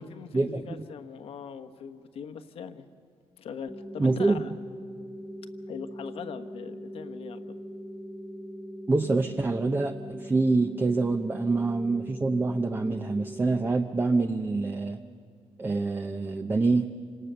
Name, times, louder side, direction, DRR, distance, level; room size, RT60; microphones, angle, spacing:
voice 1, 0.0-2.9 3.4-4.5 5.7-7.6, left 7 dB, 65° left, 8 dB, 1.2 m, -41 dB
sound 1, 3.7-13.7, equal, 5° left, 1.6 m, -41 dB
voice 2, 4.0-4.4 8.9-15.0 15.6-16.9, right 3 dB, 20° right, 7 dB, 0.7 m, -26 dB
27.0 x 19.0 x 6.9 m, 2.3 s
cardioid pair, 130°, 10 cm